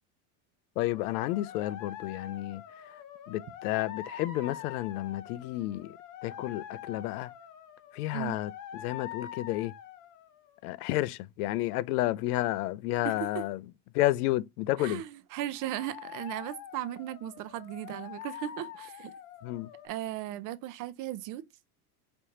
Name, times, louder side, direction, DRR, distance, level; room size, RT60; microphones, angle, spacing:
voice 1, 0.8-2.6 3.3-7.3 7.9-9.7 10.6-13.6 13.9-15.0 19.4-19.7, left 16 dB, 80° left, 0.5 m, -31 dB
sound 1, 0.8-10.6 15.5-19.9, left 10 dB, 40° left, 1.1 m, -45 dB
voice 2, 13.0-13.4 14.8-19.1 19.8-21.4, right 13 dB, 45° right, 0.6 m, -37 dB
5.1 x 3.3 x 2.8 m
supercardioid pair, 120°, 45 cm